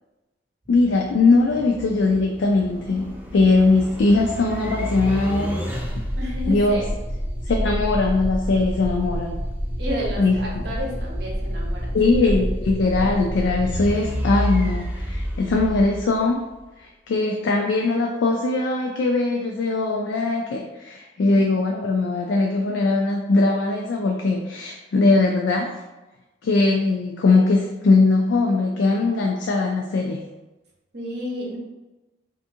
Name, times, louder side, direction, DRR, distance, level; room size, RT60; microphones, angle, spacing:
voice 1, 0.7-5.6 6.5-6.8 7.5-9.4 10.2-10.7 11.9-16.4 16.8-25.8 26.4-30.3, left 3 dB, 80° left, 0 dB, 0.3 m, -20 dB
sound 1, 0.7-16.6, equal, 10° right, 0.3 m, -29 dB
voice 2, 6.1-6.9 9.8-12.0 12.2-12.3 21.2-21.5 30.9-31.6, equal, 60° right, -3 dB, 0.8 m, -31 dB
3.4 x 2.6 x 2.7 m, 1.1 s
head